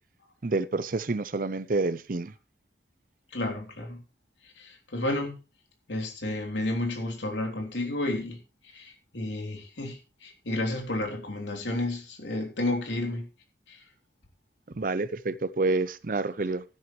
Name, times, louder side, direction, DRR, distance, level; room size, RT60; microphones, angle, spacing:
voice 1, 0.4-2.3 14.7-16.6, right 3 dB, 50° right, 0.6 m, -28 dB
voice 2, 3.3-4.0 4.6-5.4 5.9-8.4 8.7-13.3 13.7-13.8, left 2 dB, 85° left, 3.3 m, -31 dB
12.5 x 11.5 x 3.1 m
head